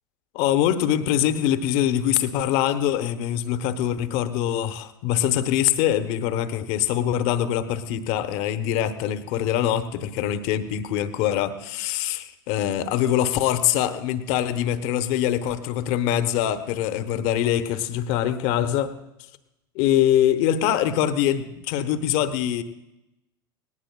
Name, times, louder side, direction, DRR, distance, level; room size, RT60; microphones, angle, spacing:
voice 1, 0.3-18.9 19.8-22.6, left 11 dB, 55° left, 11 dB, 1.0 m, -23 dB
19.0 x 18.0 x 2.3 m, 0.92 s
figure-of-eight pair, 80°, 12 cm